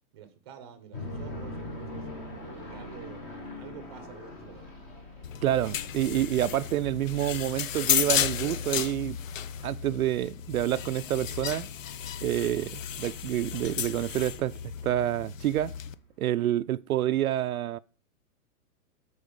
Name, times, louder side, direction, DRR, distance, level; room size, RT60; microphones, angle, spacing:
voice 1, 0.1-2.1 2.5-4.7, right 8 dB, 20° right, 0.8 m, -48 dB
sound 1, 0.9-11.0 11.3-11.4 11.8-12.1 12.5-12.6 12.8-12.9 13.5-13.8 14.3-14.4, left 1 dB, 10° left, 0.8 m, -43 dB
sound 2, 5.2-15.9, left 9 dB, 60° left, 0.7 m, -33 dB
voice 2, 5.4-9.2 9.6-11.7 12.2-14.6 14.8-15.8 16.2-17.8, right 13 dB, 70° right, 0.5 m, -28 dB
13.0 x 4.8 x 5.2 m
hypercardioid pair, 175°, 45 cm